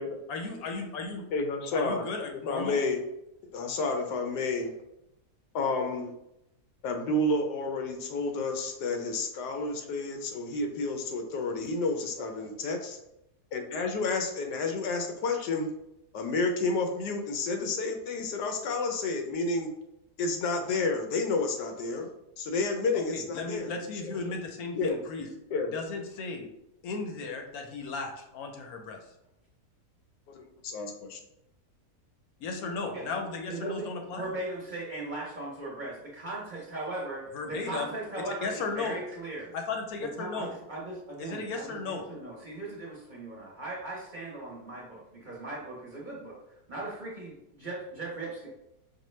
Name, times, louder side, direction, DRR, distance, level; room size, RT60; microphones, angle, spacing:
voice 1, 0.3-1.2 1.7-2.8 23.1-25.3 25.7-26.5 26.8-29.0 32.4-34.3 37.3-37.9 38.4-39.0 39.5-40.5 41.2-42.1, left 4 dB, 70° left, 3 dB, 1.0 m, -35 dB
voice 2, 1.3-2.0 2.3-3.0 3.4-4.8 5.5-6.1 6.8-13.0 13.5-15.7 16.1-19.7 20.2-23.7 24.0-24.2 24.8-25.0 25.5-25.7 30.3-31.2, left 3 dB, 90° left, 4 dB, 1.3 m, -30 dB
voice 3, 12.2-12.5 32.9-33.2 33.5-33.9 34.1-39.5 40.2-46.4 46.7-48.5, right 2 dB, 40° right, -5 dB, 0.8 m, -38 dB
5.3 x 2.2 x 3.1 m, 0.85 s
omnidirectional pair, 1.7 m